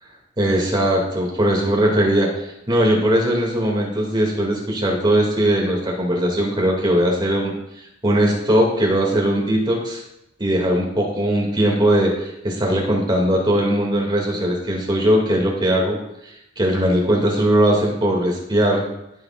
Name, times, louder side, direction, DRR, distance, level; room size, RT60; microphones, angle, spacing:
voice 1, 0.4-7.5 8.0-10.0 10.4-16.0 16.6-18.8, right 1 dB, 25° right, -2 dB, 2.4 m, -19 dB
14.0 x 7.0 x 2.5 m, 0.85 s
head